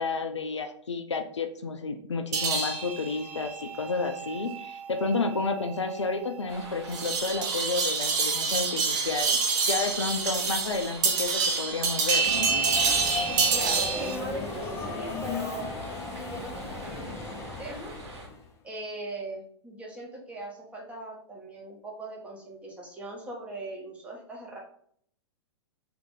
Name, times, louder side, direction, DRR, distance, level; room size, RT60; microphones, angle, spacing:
voice 1, 0.0-12.5, left 4 dB, 80° left, 6 dB, 0.4 m, -31 dB
sound 1, 2.3-14.2, right 5 dB, 40° right, 0.6 m, -28 dB
sound 2, 6.5-18.3, right 2 dB, 65° right, 0.9 m, -45 dB
Subway metro underground, 12.2-18.5, left 3 dB, 20° left, 0.5 m, -36 dB
voice 2, 13.5-15.7 16.1-18.0 18.6-24.6, right 2 dB, 10° right, -2 dB, 0.8 m, -40 dB
2.6 x 2.5 x 3.7 m, 0.63 s
figure-of-eight pair, 105°, 15 cm